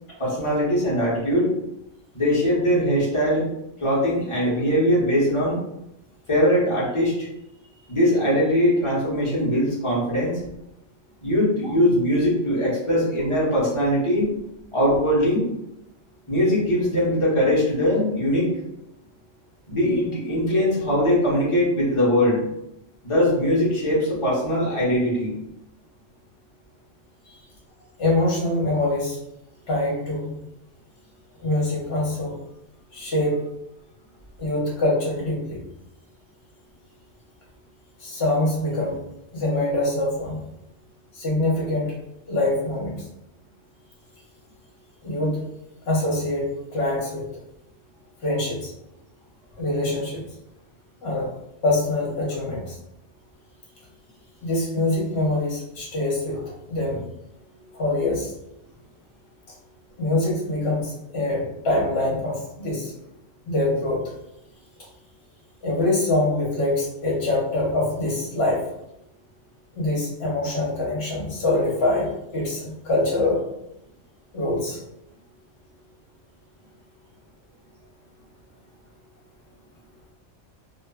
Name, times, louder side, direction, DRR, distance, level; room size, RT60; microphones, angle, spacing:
voice 1, 0.2-1.5 2.1-3.4 3.8-5.6 6.3-7.3 7.9-10.4 11.2-14.3 14.7-15.5 16.3-18.5 19.7-22.4 23.0-25.3, equal, 25° left, -7 dB, 0.9 m, -21 dB
voice 2, 28.0-29.2 29.7-30.4 31.4-32.4 32.9-33.4 34.4-35.6 38.0-39.0 39.3-40.4 41.1-42.0 42.3-43.0 45.0-45.4 45.9-47.3 48.2-48.7 49.6-50.2 51.0-51.3 51.6-52.8 54.4-57.0 57.7-58.3 60.0-62.9 63.5-64.0 65.6-68.6 69.7-73.4 74.3-74.8, left 2 dB, 60° left, -4 dB, 1.1 m, -24 dB
2.7 x 2.4 x 2.3 m, 0.83 s
omnidirectional pair, 1.3 m